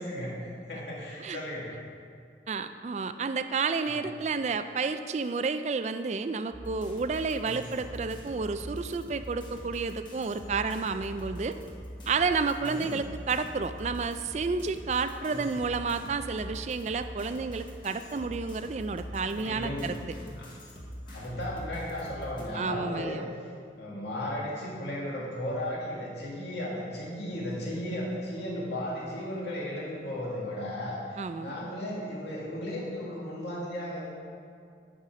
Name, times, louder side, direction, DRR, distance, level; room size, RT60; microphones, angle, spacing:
voice 1, 0.0-1.7 3.9-4.0 7.5-7.7 12.6-12.9 15.2-15.5 19.3-20.5 21.1-23.2 23.7-34.1, left 1 dB, 75° left, -5 dB, 2.2 m, -35 dB
voice 2, 2.5-11.6 12.1-20.0 22.5-23.2 31.2-31.5, right 4 dB, 40° right, 10 dB, 0.3 m, -31 dB
sound 1, 6.5-22.4, equal, 25° left, 1.2 m, -43 dB
9.8 x 5.5 x 4.9 m, 2.2 s
head